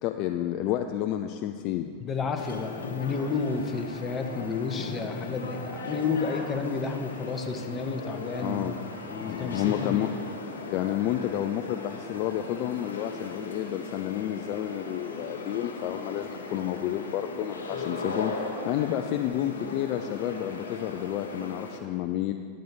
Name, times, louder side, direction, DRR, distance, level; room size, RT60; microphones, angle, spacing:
voice 1, 0.0-1.9 8.4-8.8 9.2-10.1 10.7-22.3, left 12 dB, 50° left, 6 dB, 0.4 m, -30 dB
voice 2, 2.0-8.7 9.1-10.0, left 5 dB, 25° left, 6 dB, 0.9 m, -31 dB
sound 1, 2.4-21.8, left 2 dB, 85° left, 1.1 m, -38 dB
12.0 x 7.6 x 4.0 m, 2.1 s
hypercardioid pair, 95°, 0 cm